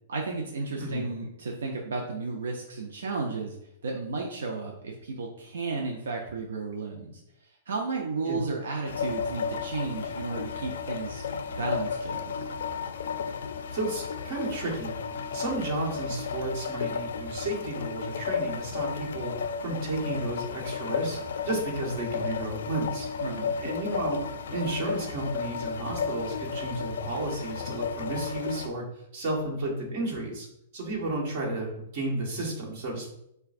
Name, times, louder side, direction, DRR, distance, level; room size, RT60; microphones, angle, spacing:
voice 1, 0.1-3.6 3.8-12.4 23.2-23.5, right 3 dB, 85° right, 0 dB, 0.6 m, -33 dB
sound 1, 8.8-28.7, left 6 dB, 80° left, 0.3 m, -33 dB
voice 2, 13.7-15.0 15.3-19.3 19.6-21.2 21.4-23.1 23.6-24.2 24.5-28.8 29.1-30.5 30.7-33.1, right 2 dB, 50° right, -2 dB, 1.4 m, -32 dB
5.7 x 2.3 x 2.5 m, 0.77 s
hypercardioid pair, 135°, 0 cm